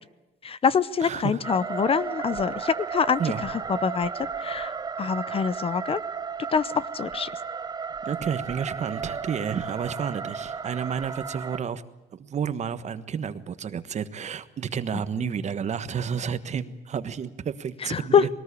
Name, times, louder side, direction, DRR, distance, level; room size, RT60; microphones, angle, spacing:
voice 1, 0.4-4.1 4.4-4.7 5.0-6.0 6.5-7.3 17.9-18.2, left 6 dB, 35° left, 18 dB, 0.7 m, -25 dB
voice 2, 1.0-1.4 3.2-3.4 8.0-11.8 12.2-18.3, right 7 dB, 45° right, 12 dB, 1.4 m, -31 dB
sound 1, 1.4-11.6, right 5 dB, 25° right, 0.7 m, -34 dB
21.0 x 18.5 x 8.5 m, 1.0 s
cardioid pair, 110°, 17 cm